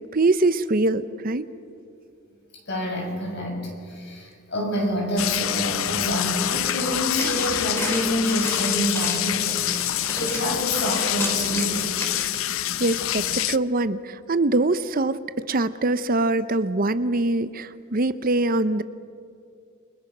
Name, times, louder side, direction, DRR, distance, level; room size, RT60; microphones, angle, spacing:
voice 1, 0.1-1.5 12.8-18.8, right 2 dB, 45° right, 13 dB, 0.7 m, -23 dB
voice 2, 2.7-3.6 4.0-9.5 10.2-11.8, equal, 55° left, 1 dB, 6.9 m, -27 dB
sound 1, 5.2-13.6, left 13 dB, 70° left, 0.5 m, -26 dB
sound 2, 6.6-12.3, equal, 10° left, 3.9 m, -34 dB
29.0 x 25.0 x 6.1 m, 2.4 s
head